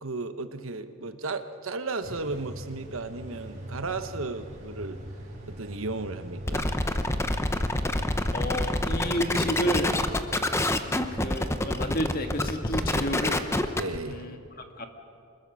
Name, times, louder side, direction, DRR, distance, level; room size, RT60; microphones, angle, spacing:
voice 1, 0.0-5.0 5.5-6.7 13.8-14.3, right 3 dB, 75° right, 10 dB, 1.1 m, -34 dB
sound 1, 2.0-14.0, equal, 35° right, 5.1 m, -42 dB
sound 2, 6.5-14.0, left 1 dB, 10° left, 0.7 m, -27 dB
voice 2, 8.3-9.9 11.1-13.4 14.1-14.4 14.8-14.9, equal, 45° left, 5 dB, 1.8 m, -31 dB
25.5 x 21.0 x 6.3 m, 2.5 s
head